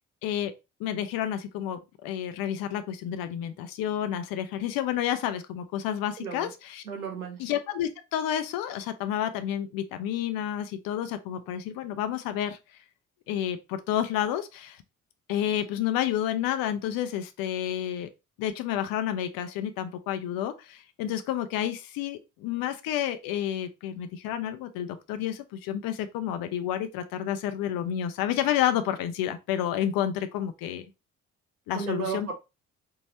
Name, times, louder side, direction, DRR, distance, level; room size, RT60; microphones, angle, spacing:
voice 1, 0.2-0.5 0.8-6.8 7.4-12.8 13.3-14.8 15.3-18.1 18.4-30.8 31.7-32.3, left 10 dB, 55° left, 0.6 m, -30 dB
voice 2, 6.2-6.5 6.9-7.4 31.7-32.3, right 6 dB, 90° right, 0.6 m, -34 dB
4.5 x 3.0 x 2.7 m
figure-of-eight pair, 40°, 42 cm